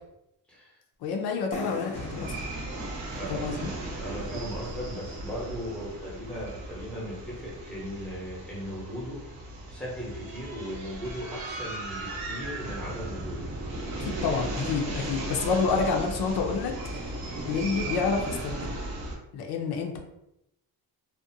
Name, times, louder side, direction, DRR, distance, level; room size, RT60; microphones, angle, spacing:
voice 1, 1.0-2.5 3.3-3.7 14.0-17.1 17.4-18.8 19.3-20.0, left 5 dB, 80° left, 2 dB, 0.5 m, -29 dB
sound 1, 1.5-5.1, equal, 20° left, 0.4 m, -43 dB
sound 2, 1.9-19.1, right 2 dB, 65° right, 0.8 m, -36 dB
voice 2, 3.1-3.6 3.9-9.2 9.7-13.4, equal, ahead, -5 dB, 0.7 m, -37 dB
2.5 x 2.1 x 2.6 m, 0.84 s
cardioid pair, 145°, 38 cm